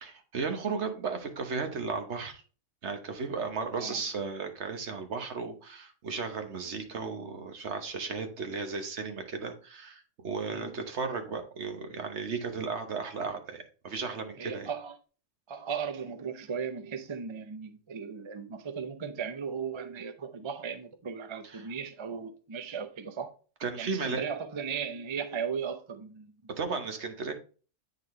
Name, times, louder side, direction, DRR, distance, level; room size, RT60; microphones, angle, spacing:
voice 1, 0.0-2.4 2.8-14.7 21.5-21.6 23.6-24.2 26.6-27.3, right 4 dB, 60° right, 1.3 m, -35 dB
voice 2, 14.4-15.0 15.5-23.3 23.8-26.3, right 6 dB, 40° right, 0.4 m, -36 dB
8.9 x 4.1 x 3.2 m
omnidirectional pair, 1.4 m